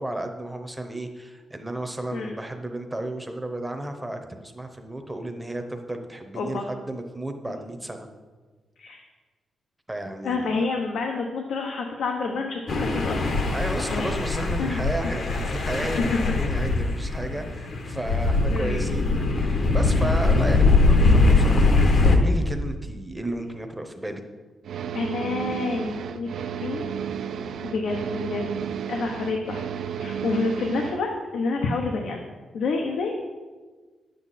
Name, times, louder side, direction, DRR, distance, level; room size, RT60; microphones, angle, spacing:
voice 1, 0.0-8.1 9.9-10.7 13.5-24.2, right 1 dB, 5° right, 5 dB, 0.8 m, -33 dB
voice 2, 6.3-6.6 8.8-9.0 10.2-13.4 13.9-14.1 14.6-14.8 15.9-16.3 18.5-18.9 19.9-20.1 21.0-21.3 24.9-26.9 27.6-28.6 28.9-29.7 30.0-32.2 32.5-33.1, left 3 dB, 80° left, 2 dB, 0.9 m, -28 dB
sound 1, 12.7-22.2, left 3 dB, 50° left, 0.9 m, -21 dB
sound 2, 24.6-31.0, right 7 dB, 70° right, 0.4 m, -32 dB
9.9 x 7.8 x 4.2 m, 1.4 s
wide cardioid pair, 160°, 0 cm